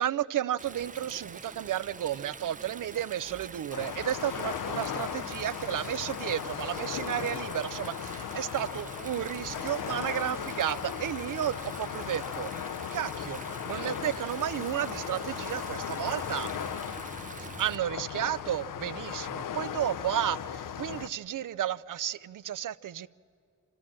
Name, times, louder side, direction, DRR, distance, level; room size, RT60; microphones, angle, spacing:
voice 1, 0.0-12.5 12.9-13.4 13.7-16.5 17.6-23.1, right 11 dB, 80° right, 0.5 m, -32 dB
Stream, 0.6-17.8, right 5 dB, 25° right, 0.4 m, -46 dB
sound 1, 3.7-21.1, left 8 dB, 85° left, 0.6 m, -37 dB
28.0 x 13.5 x 7.4 m
wide cardioid pair, 85°, 31 cm